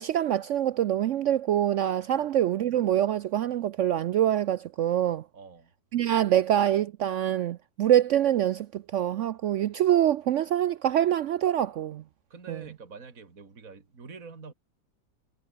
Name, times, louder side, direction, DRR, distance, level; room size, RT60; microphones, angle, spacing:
voice 1, 0.0-5.2 5.9-12.0 12.5-12.6, right 11 dB, 85° right, 0.6 m, -25 dB
voice 2, 5.3-5.7 12.3-14.5, right 4 dB, 50° right, 3.1 m, -46 dB
omnidirectional pair, 1.9 m